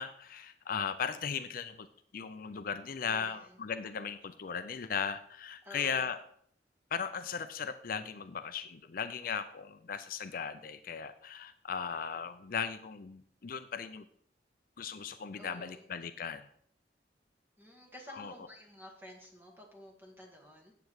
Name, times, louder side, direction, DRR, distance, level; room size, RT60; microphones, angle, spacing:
voice 1, 0.0-1.9 2.1-6.2 6.9-14.1 14.8-16.5 18.1-18.3, left 6 dB, 55° left, 10 dB, 0.5 m, -37 dB
voice 2, 3.0-3.6 5.6-6.1 15.4-15.9 17.6-20.7, left 1 dB, 15° right, 0 dB, 2.0 m, -52 dB
9.2 x 7.7 x 4.8 m, 0.63 s
head